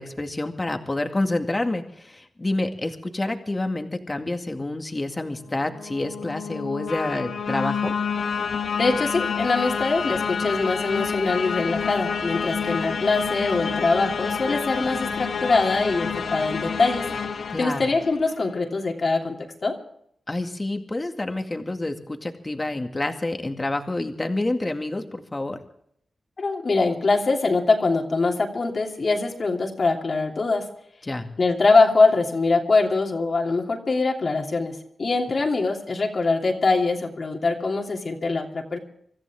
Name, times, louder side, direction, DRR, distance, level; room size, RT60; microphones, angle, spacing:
voice 1, 0.0-7.9 17.5-17.9 20.3-25.6 31.0-31.3, left 2 dB, 25° left, 5 dB, 2.1 m, -28 dB
sound 1, 5.4-18.5, left 6 dB, 80° left, 1.5 m, -28 dB
voice 2, 8.8-17.1 17.6-19.8 26.4-30.7 31.4-38.8, left 3 dB, 50° left, 1 dB, 3.0 m, -23 dB
25.5 x 14.5 x 3.6 m, 0.68 s
wide cardioid pair, 85°, 0 cm